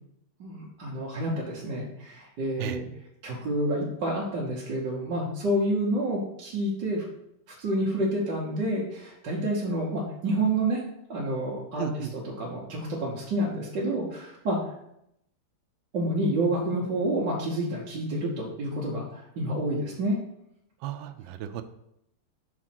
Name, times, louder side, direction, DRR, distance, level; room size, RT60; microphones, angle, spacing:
voice 1, 0.4-2.8 3.2-7.1 7.6-10.8 11.1-14.6 15.9-20.2, right 1 dB, 60° right, -6 dB, 1.8 m, -29 dB
voice 2, 11.8-12.1 20.8-21.6, right 11 dB, 75° right, 7 dB, 1.3 m, -34 dB
6.3 x 4.1 x 5.9 m, 0.80 s
omnidirectional pair, 2.3 m